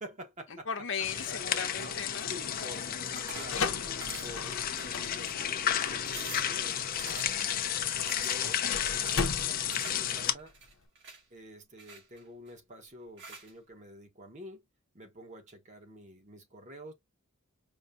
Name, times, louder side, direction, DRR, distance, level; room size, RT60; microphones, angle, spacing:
voice 1, 0.0-0.7 1.8-2.0 2.3-3.8 4.1-6.8 7.1-7.4 8.1-8.6 8.9-10.5 11.3-14.6 14.9-16.9, equal, 35° right, 1.3 m, -48 dB
voice 2, 0.7-2.3 2.6-2.7 3.8-4.3, left 6 dB, 60° left, 0.9 m, -37 dB
sound 1, 1.0-10.3, left 9 dB, 40° left, 0.5 m, -32 dB
sound 2, 3.2-10.8, left 4 dB, 80° left, 0.8 m, -38 dB
sound 3, 3.2-3.6 4.0-4.5 4.8-5.4 5.7-5.8 6.1-6.5 7.0-7.5 8.1-8.4 9.0-10.1 10.4-11.2 11.8-12.5 13.2-13.5, right 4 dB, 60° right, 2.1 m, -47 dB
5.3 x 2.4 x 2.6 m
head